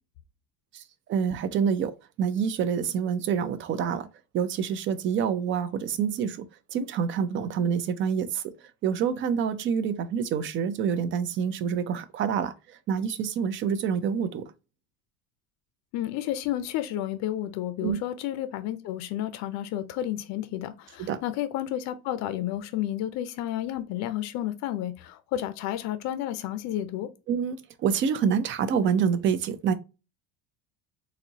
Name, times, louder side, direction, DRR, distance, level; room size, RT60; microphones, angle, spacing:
voice 1, 1.1-4.1 4.3-6.4 6.7-8.4 8.8-14.4 17.8-18.0 21.0-21.2 27.3-29.7, right 7 dB, 35° right, 0.5 m, -27 dB
voice 2, 15.9-27.1, left 12 dB, 55° left, 0.6 m, -31 dB
4.2 x 2.7 x 2.8 m
cardioid pair, 145°, 35 cm